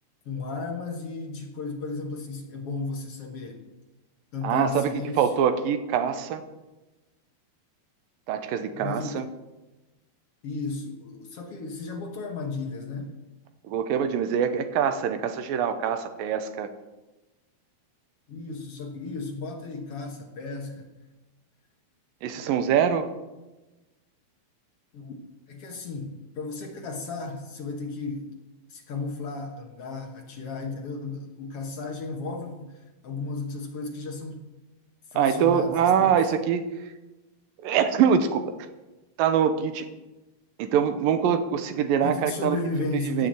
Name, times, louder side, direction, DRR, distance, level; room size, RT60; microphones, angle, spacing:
voice 1, 0.2-3.7 4.3-5.2 8.7-9.2 10.4-13.1 18.3-20.9 24.9-25.1 25.5-28.3 28.7-34.4 35.1-36.2 42.0-43.3, left 3 dB, 55° left, 2 dB, 1.7 m, -34 dB
voice 2, 4.4-6.4 8.3-9.3 13.6-16.7 22.2-23.1 35.2-36.9 37.6-38.5 39.2-39.9 40.6-42.6 42.9-43.3, right 8 dB, 75° right, 9 dB, 2.5 m, -24 dB
15.5 x 6.9 x 7.6 m, 1.1 s
omnidirectional pair, 4.4 m